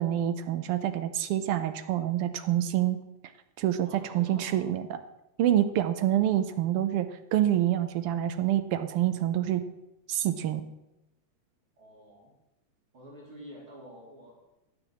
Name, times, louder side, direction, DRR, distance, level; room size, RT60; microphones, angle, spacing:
voice 1, 0.0-3.0 3.6-5.0 5.4-9.6 10.1-10.6, right 12 dB, 75° right, 10 dB, 1.3 m, -27 dB
voice 2, 3.8-4.5 11.8-12.3 12.9-14.4, equal, 45° right, -4 dB, 4.3 m, -48 dB
11.5 x 7.8 x 6.3 m, 0.93 s
omnidirectional pair, 3.3 m